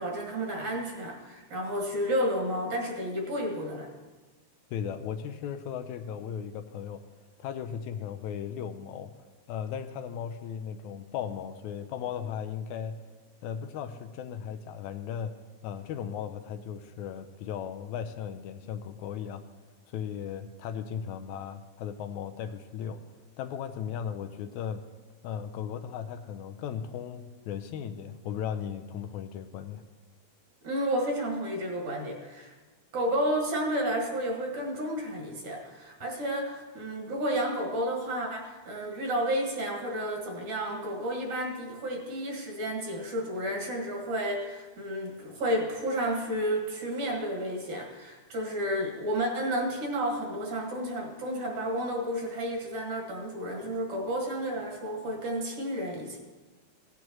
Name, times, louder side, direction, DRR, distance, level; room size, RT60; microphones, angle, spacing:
voice 1, 0.0-3.9 30.6-32.5 32.9-56.2, equal, 70° right, -1 dB, 3.1 m, -31 dB
voice 2, 4.7-7.0 7.4-9.1 9.5-13.0 13.4-15.4 15.6-19.4 19.9-23.0 23.4-24.9 25.2-29.8, left 8 dB, 80° left, 7 dB, 1.9 m, -36 dB
17.0 x 9.5 x 3.0 m, 1.3 s
omnidirectional pair, 3.5 m